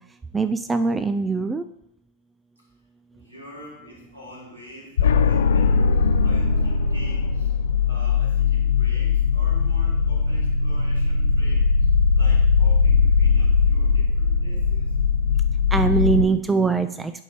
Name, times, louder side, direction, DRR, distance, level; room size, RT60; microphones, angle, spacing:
voice 1, 0.3-1.6 15.7-17.1, right 4 dB, 10° right, 11 dB, 0.3 m, -22 dB
voice 2, 3.1-5.8 6.2-7.5 7.8-11.6 12.1-14.9, equal, 80° right, -5 dB, 3.1 m, -44 dB
sound 1, 5.0-16.2, left 5 dB, 65° left, 0.4 m, -20 dB
9.7 x 5.4 x 3.0 m, 0.78 s
figure-of-eight pair, 90°, 0 cm